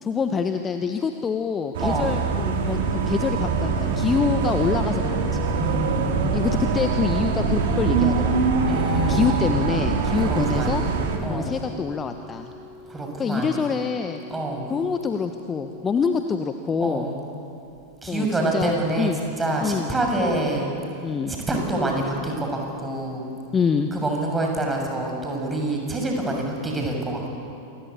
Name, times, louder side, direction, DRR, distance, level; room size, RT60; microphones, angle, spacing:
voice 1, 0.0-5.5 6.3-8.5 9.1-10.8 11.3-12.5 13.2-14.2 14.7-17.1 18.1-18.7 19.0-19.2 19.6-19.9 21.0-21.3 23.5-23.9, left 5 dB, 20° left, 7 dB, 1.2 m, -26 dB
sound 1, 1.7-11.2, right 4 dB, 55° right, 3.3 m, -23 dB
voice 2, 1.8-2.1 5.5-6.4 8.7-9.4 10.3-10.7 11.2-11.5 12.9-13.6 14.3-14.6 16.8-17.2 18.0-19.1 19.4-20.7 21.3-23.2 23.9-27.3, right 2 dB, 10° right, 1 dB, 7.0 m, -26 dB
Organ, 5.6-16.5 17.7-17.8, left 2 dB, 35° right, 6.8 m, -46 dB
27.5 x 23.0 x 8.5 m, 2.7 s
figure-of-eight pair, 90°, 0 cm